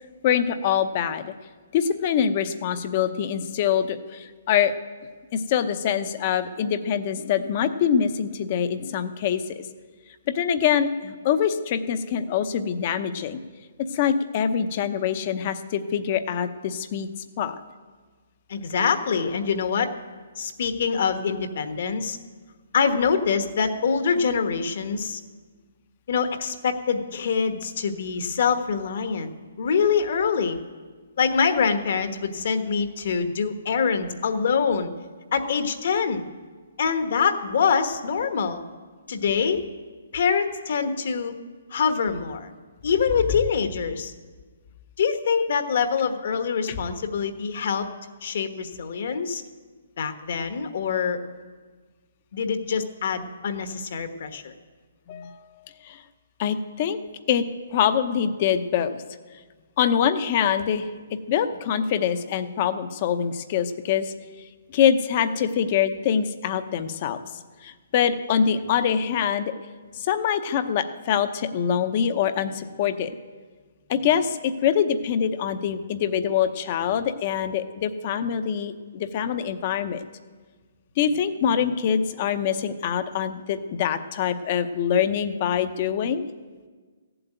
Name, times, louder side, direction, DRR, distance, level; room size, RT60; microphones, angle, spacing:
voice 1, 0.2-1.3 1.7-4.7 5.3-9.7 10.3-13.4 13.9-17.1 17.4-17.6 46.7-46.8 55.1-55.4 55.8-56.0 56.4-57.0 57.3-59.0 59.8-64.1 64.7-67.2 67.6-69.5 70.0-73.1 73.9-80.0 81.0-86.3, left 8 dB, 30° left, 11 dB, 0.7 m, -24 dB
voice 2, 18.5-19.9 20.4-22.2 22.7-25.2 26.1-29.3 29.6-30.6 31.2-34.9 35.3-36.2 36.8-38.6 39.1-39.6 40.1-41.4 41.7-42.5 42.8-44.1 45.0-47.9 48.2-49.4 50.0-51.2 52.3-54.5, left 6 dB, 55° left, 8 dB, 1.2 m, -24 dB
15.0 x 7.9 x 9.1 m, 1.5 s
hypercardioid pair, 165°, 0 cm